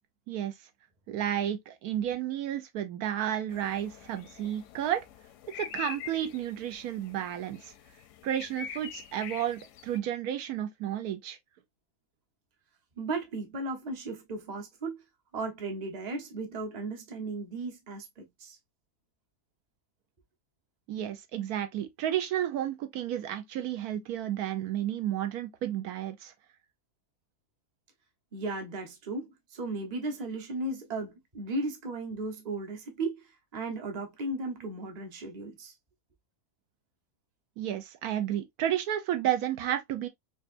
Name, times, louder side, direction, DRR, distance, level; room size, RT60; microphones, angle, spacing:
voice 1, 1.1-5.0 5.5-7.7 8.2-11.4 20.9-26.3 37.6-40.1, right 11 dB, 80° right, 1.1 m, -32 dB
sound 1, 3.5-10.0, left 8 dB, 70° left, 0.8 m, -45 dB
voice 2, 13.0-15.0 15.3-18.6 28.3-35.7, right 2 dB, 35° right, 0.9 m, -36 dB
5.1 x 2.4 x 2.5 m
omnidirectional pair, 1.6 m